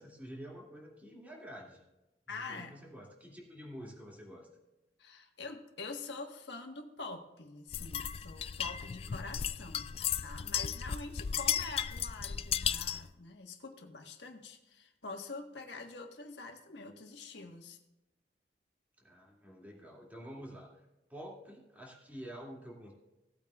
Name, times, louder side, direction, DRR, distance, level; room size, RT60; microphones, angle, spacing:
voice 1, 0.0-1.8 2.3-4.5 9.1-9.3 19.0-20.7 21.1-22.9, equal, 10° right, -3 dB, 2.3 m, -48 dB
voice 2, 2.3-2.8 5.0-9.9 10.2-17.8, left 3 dB, 80° left, 3 dB, 1.4 m, -45 dB
sound 1, 7.7-13.1, left 9 dB, 35° left, 0.3 m, -35 dB
17.0 x 8.7 x 2.4 m, 0.99 s
head